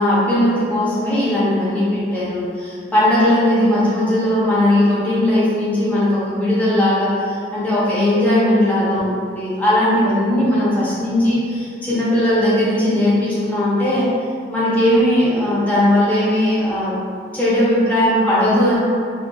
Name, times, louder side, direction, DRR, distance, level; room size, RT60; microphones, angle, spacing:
voice 1, 0.0-14.1 14.5-17.0 17.3-18.8, left 1 dB, 10° left, -9 dB, 0.5 m, -18 dB
2.8 x 2.1 x 2.2 m, 2.2 s
head